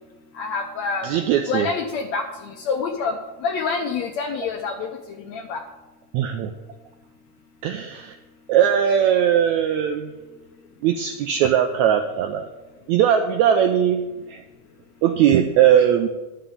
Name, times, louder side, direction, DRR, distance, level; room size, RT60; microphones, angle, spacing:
voice 1, 0.3-5.6, left 5 dB, 75° left, 3 dB, 1.6 m, -27 dB
voice 2, 1.0-1.7 6.1-6.5 7.6-8.1 8.5-10.1 10.8-12.5 12.9-14.4 15.0-16.1, right 9 dB, 85° right, 6 dB, 1.6 m, -19 dB
11.0 x 5.7 x 7.0 m, 1.1 s
omnidirectional pair, 3.9 m